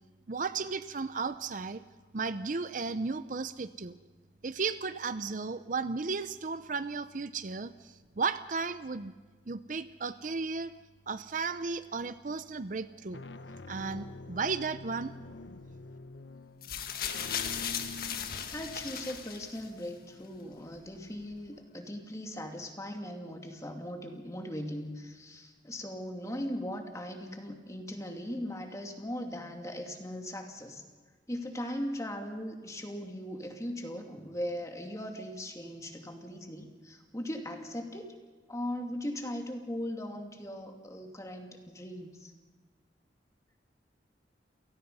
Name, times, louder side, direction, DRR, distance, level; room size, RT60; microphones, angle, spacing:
voice 1, 0.3-1.8 2.1-4.0 4.4-9.1 9.5-10.7 11.1-13.2 13.7-15.1, right 4 dB, 45° right, 12 dB, 0.6 m, -34 dB
sound 1, 11.7-12.1 12.9-21.5, left 2 dB, 90° left, 1.0 m, -48 dB
sound 2, 16.6-19.9 20.8-20.9, left 8 dB, 55° left, 1.7 m, -37 dB
voice 2, 18.5-30.8 31.3-38.1 38.5-42.3, equal, 20° left, 3 dB, 2.5 m, -39 dB
29.0 x 18.0 x 5.5 m, 1.4 s
head